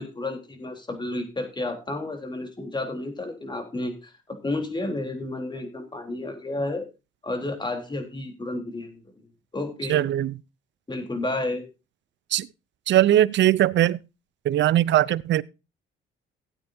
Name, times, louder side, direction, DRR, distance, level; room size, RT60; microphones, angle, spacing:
voice 1, 0.0-4.1 4.4-6.9 7.2-9.1 9.5-10.0 10.9-11.6, left 2 dB, 20° left, 3.5 m, -31 dB
voice 2, 9.9-10.3 12.3-12.5 12.9-14.0 14.4-15.4, right 13 dB, 65° right, 0.6 m, -20 dB
17.5 x 8.7 x 2.6 m
cardioid pair, 90°, 20 cm